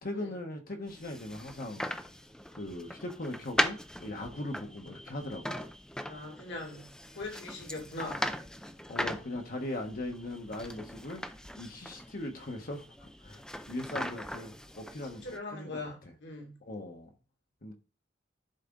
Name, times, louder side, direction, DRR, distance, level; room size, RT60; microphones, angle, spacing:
voice 1, 0.0-1.8 2.5-5.6 8.9-11.2 11.6-13.4 13.7-15.8 16.6-17.1 17.6-17.7, left 1 dB, 50° left, 1.2 m, -39 dB
sound 1, 0.9-15.4, equal, 5° left, 0.5 m, -39 dB
voice 2, 6.0-6.9 7.1-8.2 15.2-16.6, left 2 dB, 65° left, 2.2 m, -41 dB
11.0 x 4.2 x 3.8 m
head